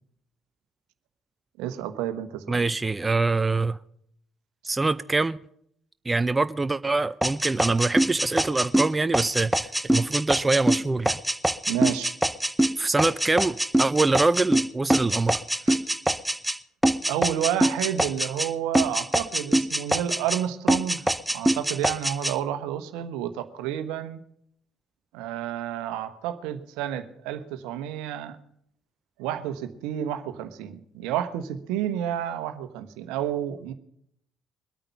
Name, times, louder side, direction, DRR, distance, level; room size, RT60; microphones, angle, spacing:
voice 1, 1.6-2.6 11.7-12.1 15.7-15.8 17.1-21.0 21.3-24.2 25.1-28.4 29.2-33.7, right 11 dB, 75° right, 1.1 m, -30 dB
voice 2, 2.5-3.8 4.6-5.4 6.0-11.2 12.8-15.4, right 3 dB, 20° right, 0.6 m, -24 dB
sound 1, 7.2-16.6 16.8-18.5 18.7-20.4 20.7-22.3, right 1 dB, 5° right, 1.0 m, -24 dB
22.5 x 9.0 x 5.7 m
hypercardioid pair, 55°, 0 cm